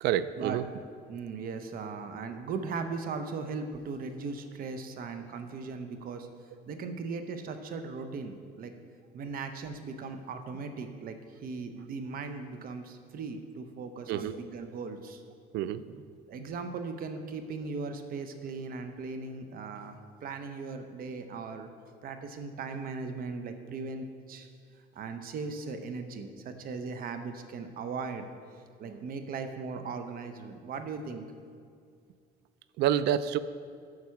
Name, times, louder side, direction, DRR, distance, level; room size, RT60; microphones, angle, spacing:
voice 1, 0.0-0.6 14.1-14.4 15.5-15.8 32.8-33.4, right 10 dB, 80° right, 15 dB, 0.4 m, -28 dB
voice 2, 1.1-6.3 6.7-8.7 9.1-15.2 16.3-21.7 22.0-24.5 24.9-28.2 28.8-31.2, right 4 dB, 60° right, 8 dB, 0.9 m, -38 dB
9.6 x 6.0 x 5.9 m, 2.3 s
cardioid pair, 110°, 17 cm